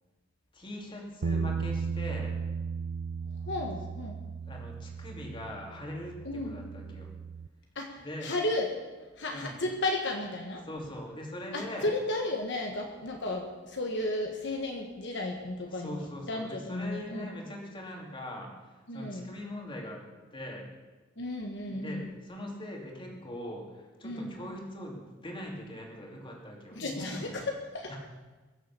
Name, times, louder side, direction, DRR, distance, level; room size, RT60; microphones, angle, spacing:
voice 1, 0.5-2.3 4.5-7.1 8.0-8.3 9.3-9.5 10.6-11.9 15.7-20.0 20.3-20.7 21.7-27.4 27.9-28.0, left 1 dB, 25° left, 0 dB, 2.6 m, -41 dB
sound 1, 1.2-7.5, right 5 dB, 60° right, 0.5 m, -36 dB
voice 2, 3.5-4.2 6.2-6.6 7.7-8.7 9.2-10.6 11.5-17.3 18.9-19.3 21.2-22.1 24.0-24.3 26.7-27.9, left 2 dB, 60° left, 2 dB, 1.5 m, -34 dB
22.0 x 7.6 x 7.0 m, 1.3 s
head